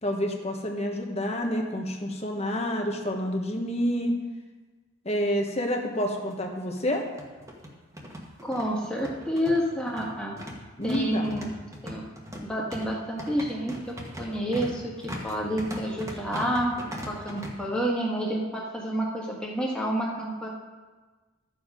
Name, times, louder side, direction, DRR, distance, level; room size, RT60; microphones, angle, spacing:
voice 1, 0.0-4.1 5.0-7.0 10.8-11.4, equal, 30° left, 2 dB, 1.3 m, -28 dB
sound 1, 5.5-5.6 5.8-5.9 6.8-17.5, equal, 15° right, 1.3 m, -39 dB
voice 2, 8.4-10.3 10.8-11.5 11.8-12.0 12.4-16.7 17.1-20.5, equal, 5° left, -3 dB, 1.7 m, -29 dB
12.5 x 7.2 x 5.0 m, 1.3 s
head